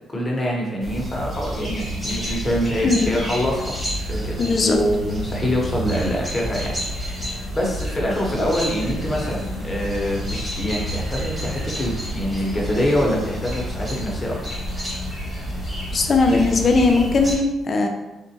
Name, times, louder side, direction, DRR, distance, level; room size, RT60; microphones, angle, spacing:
voice 1, 0.1-3.7 4.1-14.4, equal, 20° left, -2 dB, 0.9 m, -25 dB
sound 1, 0.8-17.3, equal, 20° right, 1.5 m, -29 dB
voice 2, 4.4-4.8 15.9-17.9, left 3 dB, 45° left, 4 dB, 0.5 m, -18 dB
3.8 x 2.4 x 2.9 m, 1.0 s
cardioid pair, 90°, 0 cm